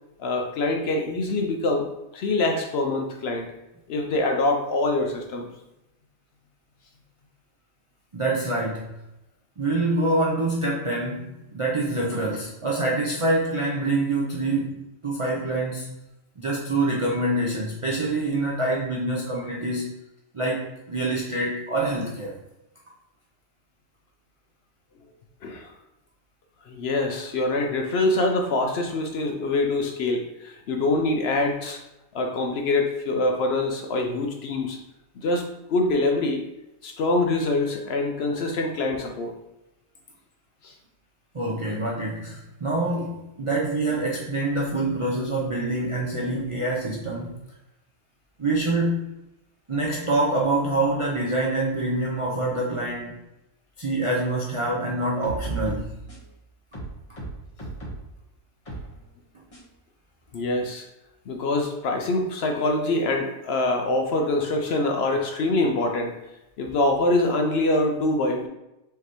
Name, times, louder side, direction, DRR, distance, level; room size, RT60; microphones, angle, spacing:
voice 1, 0.2-1.9 2.1-3.5 3.9-5.5 25.4-25.7 26.7-31.8 32.1-34.8 35.2-35.4 35.7-36.4 36.8-39.3 40.6-40.7 41.7-41.8 60.3-60.8 61.3-66.1 66.6-68.5, left 2 dB, 65° left, 3 dB, 0.7 m, -24 dB
voice 2, 8.1-8.9 9.6-14.8 15.0-16.0 16.4-19.9 20.3-22.4 41.3-47.4 48.4-49.1 49.7-53.1 53.8-56.0, right 2 dB, 50° right, -4 dB, 0.3 m, -26 dB
sound 1, 55.0-56.3 56.7-58.1 58.7-58.9 59.5-59.6, right 3 dB, 25° left, 1.3 m, -34 dB
4.7 x 3.3 x 3.0 m, 0.92 s
omnidirectional pair, 1.4 m